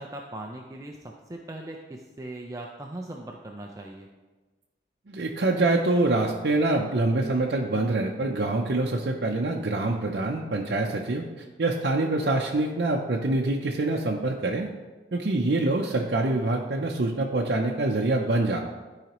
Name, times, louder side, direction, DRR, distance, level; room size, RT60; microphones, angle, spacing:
voice 1, 0.0-4.1, right 1 dB, 20° right, 1 dB, 0.4 m, -39 dB
voice 2, 5.1-14.7 15.1-18.6, right 2 dB, 65° right, -1 dB, 0.6 m, -25 dB
12.0 x 4.9 x 3.0 m, 1.2 s
head